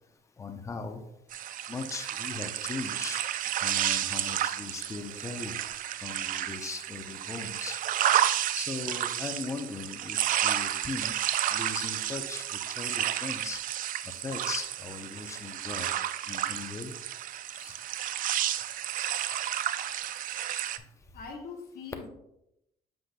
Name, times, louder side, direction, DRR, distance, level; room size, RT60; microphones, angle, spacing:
voice 1, 0.4-1.0 1.7-3.2 3.6-5.5 6.0-7.8 8.5-11.1 11.5-13.6 14.1-15.9 16.3-16.9 17.6-17.8, left 4 dB, 15° left, 5 dB, 0.7 m, -39 dB
sound 1, 1.3-20.8, right 11 dB, 55° right, 0.4 m, -31 dB
voice 2, 21.1-22.1, left 5 dB, 65° left, 2 dB, 1.4 m, -42 dB
7.8 x 5.8 x 2.3 m, 0.83 s
cardioid pair, 110°, 17 cm